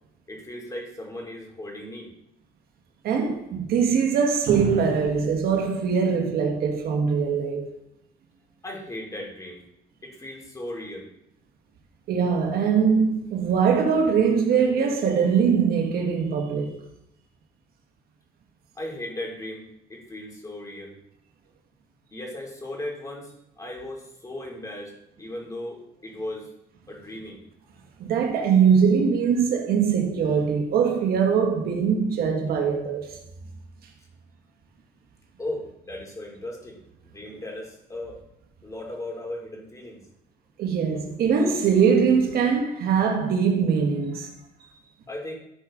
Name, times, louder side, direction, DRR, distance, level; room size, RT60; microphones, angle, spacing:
voice 1, 0.3-2.1 8.6-9.6 10.0-11.1 18.7-20.9 22.1-24.9 25.2-26.5 26.9-27.4 34.0-34.1 35.4-36.8 37.0-38.2 38.6-40.0 45.1-45.4, left 1 dB, 20° left, 3.0 m, -37 dB
voice 2, 3.0-7.7 12.1-16.8 28.0-33.2 40.6-44.3, right 6 dB, 65° right, 1.4 m, -22 dB
14.0 x 5.0 x 3.8 m
cardioid pair, 110°, 17 cm